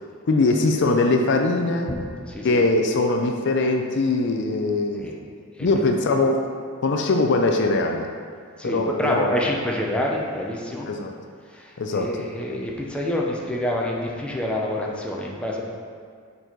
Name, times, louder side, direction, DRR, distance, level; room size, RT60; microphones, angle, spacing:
voice 1, 0.3-1.9 2.4-5.2 5.6-6.4 6.8-8.1 8.6-9.2 10.9-11.1 11.8-12.2, left 2 dB, 55° left, 3 dB, 0.5 m, -21 dB
voice 2, 2.2-2.6 5.0-5.2 5.6-5.7 8.6-10.9 11.5-15.6, left 1 dB, 5° left, -3 dB, 0.6 m, -27 dB
6.8 x 4.1 x 4.5 m, 2.1 s
head